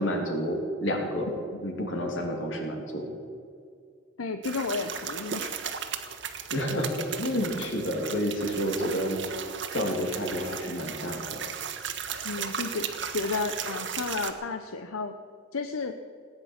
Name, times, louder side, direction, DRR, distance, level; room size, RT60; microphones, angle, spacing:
voice 1, 0.0-1.3 1.6-3.1 6.5-9.2 9.7-11.4, equal, 65° left, 2 dB, 3.0 m, -29 dB
voice 2, 1.3-1.6 4.2-5.6 12.2-15.1 15.5-15.9, left 4 dB, 85° left, 8 dB, 0.8 m, -32 dB
sound 1, 4.4-14.3, right 7 dB, 60° right, 1.3 m, -36 dB
18.5 x 9.8 x 7.4 m, 2.3 s
head